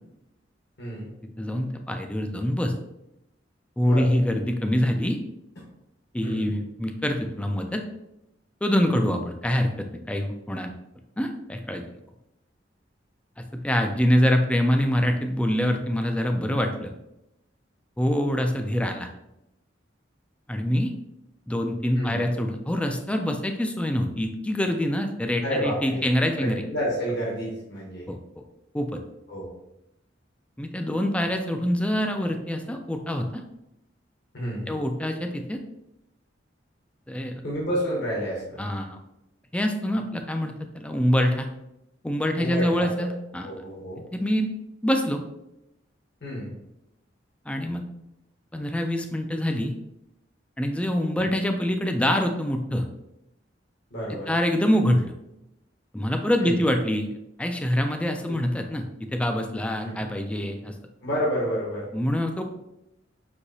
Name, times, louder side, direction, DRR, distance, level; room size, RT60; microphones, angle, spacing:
voice 1, 0.8-1.1 3.8-4.1 6.2-6.5 8.9-9.0 21.9-22.3 25.4-26.1 26.4-28.1 29.3-29.5 34.3-34.8 37.4-38.6 42.4-43.1 43.4-44.0 46.2-46.6 53.9-54.3 56.4-56.6 58.3-58.4 59.8-60.1 61.0-61.9, equal, 60° left, -3 dB, 1.2 m, -30 dB
voice 2, 1.4-2.7 3.8-5.2 6.1-7.8 8.6-10.7 11.2-11.8 13.6-17.0 18.0-19.1 20.5-20.9 21.5-26.6 28.1-28.2 28.7-29.0 30.6-33.3 34.7-35.6 37.1-37.3 38.6-39.0 39.5-41.5 42.0-43.5 44.1-44.5 44.8-45.2 47.5-47.8 48.5-49.7 50.6-52.9 54.1-55.1 55.9-57.1 57.4-58.8 59.1-60.7 61.9-62.4, equal, 5° left, 4 dB, 0.4 m, -25 dB
6.2 x 2.9 x 2.7 m, 0.88 s
head